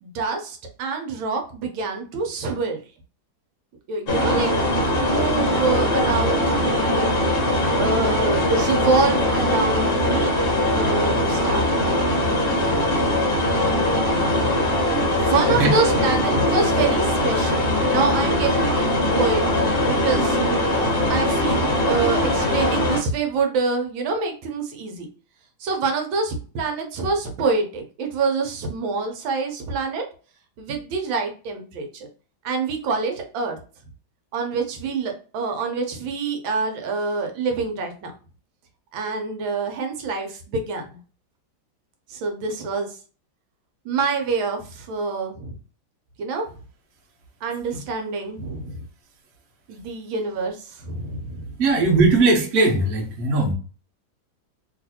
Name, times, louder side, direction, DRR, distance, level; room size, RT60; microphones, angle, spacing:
voice 1, 0.0-2.8 3.9-4.5 4.8-7.1 7.7-10.3 10.7-11.7 15.2-18.9 19.2-20.4 21.1-25.1 25.6-30.0 30.6-32.1 32.4-33.6 34.3-38.1 38.9-41.0 42.1-43.0 43.8-45.6 46.2-46.5 47.4-48.8 49.7-51.5, right 4 dB, 80° right, 3 dB, 1.4 m, -26 dB
sound 1, 4.1-23.0, left 1 dB, 45° left, 0.7 m, -21 dB
voice 2, 51.6-53.5, right 3 dB, 50° right, -1 dB, 1.1 m, -18 dB
3.1 x 2.7 x 2.8 m, 0.37 s
omnidirectional pair, 2.2 m